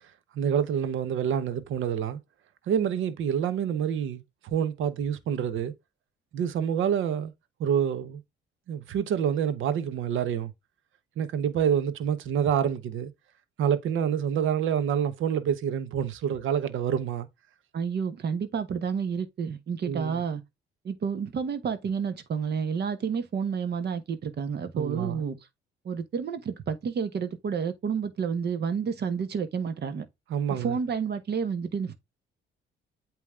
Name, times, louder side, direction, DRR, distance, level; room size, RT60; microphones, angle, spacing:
voice 1, 0.3-2.2 2.7-5.7 6.3-7.3 7.6-8.2 8.7-10.5 11.2-13.1 13.6-17.3 19.8-20.2 24.8-25.2 30.3-30.8, right 8 dB, 75° right, 0.9 m, -27 dB
voice 2, 17.7-20.4 20.8-25.4 25.8-30.1 30.5-31.9, right 6 dB, 55° right, 1.2 m, -30 dB
8.5 x 3.1 x 3.6 m
cardioid pair, 80°, 21 cm